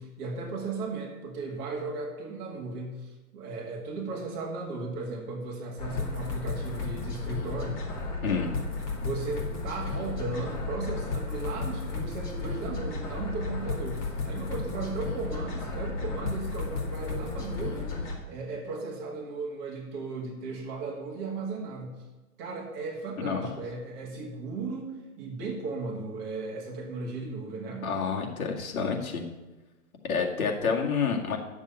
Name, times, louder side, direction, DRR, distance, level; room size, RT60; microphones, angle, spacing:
voice 1, 0.0-7.8 9.0-18.0 18.3-22.0 22.4-27.9, right 3 dB, 25° right, -1 dB, 2.0 m, -36 dB
sound 1, 5.8-18.2, left 3 dB, 30° left, 2.2 m, -33 dB
voice 2, 27.8-29.2 30.0-31.4, left 5 dB, 65° left, 1 dB, 2.2 m, -28 dB
10.0 x 7.2 x 6.9 m, 1.1 s
hypercardioid pair, 160°, 45 cm